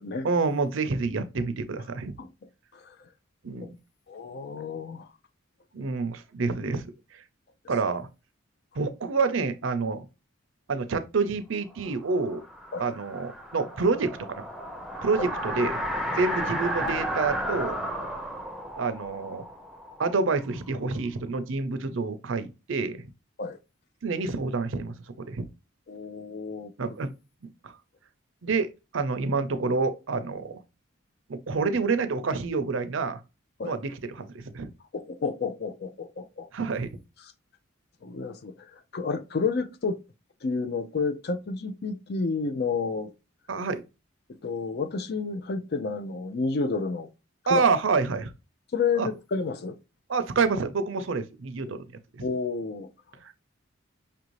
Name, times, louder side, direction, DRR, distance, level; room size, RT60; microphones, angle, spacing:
voice 1, 0.2-2.2 3.4-3.7 5.7-6.8 7.1-7.2 7.7-8.1 8.8-10.1 10.7-12.4 12.8-14.5 15.0-15.8 16.1-17.8 18.7-19.4 20.0-23.0 24.0-25.5 26.8-27.1 27.6-27.7 28.4-30.6 31.3-33.2 33.6-34.7 36.5-36.9 43.5-43.8 47.5-48.3 49.0-49.1 50.1-51.9 52.1-52.2 53.2-53.3, right 4 dB, 65° right, 0.5 m, -28 dB
voice 2, 4.1-5.1 12.7-12.9 23.4-23.6 25.9-26.7 33.6-33.7 34.9-36.5 38.0-40.0 40.4-43.1 44.3-47.1 47.4-47.6 48.7-49.8 52.2-52.9, left 4 dB, 50° left, 0.5 m, -30 dB
sound 1, 11.9-20.7, equal, ahead, 0.7 m, -33 dB
5.5 x 2.6 x 3.0 m
head